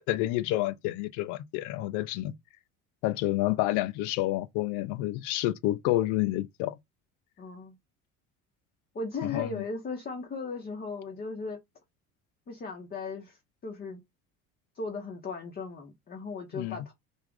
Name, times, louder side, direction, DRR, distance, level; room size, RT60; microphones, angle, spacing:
voice 1, 0.1-2.3 3.0-6.8 9.2-9.6 16.5-16.8, left 16 dB, 45° left, 0.5 m, -29 dB
voice 2, 7.4-7.8 8.9-11.6 12.5-14.0 14.7-16.9, left 4 dB, 20° left, 0.9 m, -37 dB
3.3 x 2.5 x 3.5 m
figure-of-eight pair, 55°, 43 cm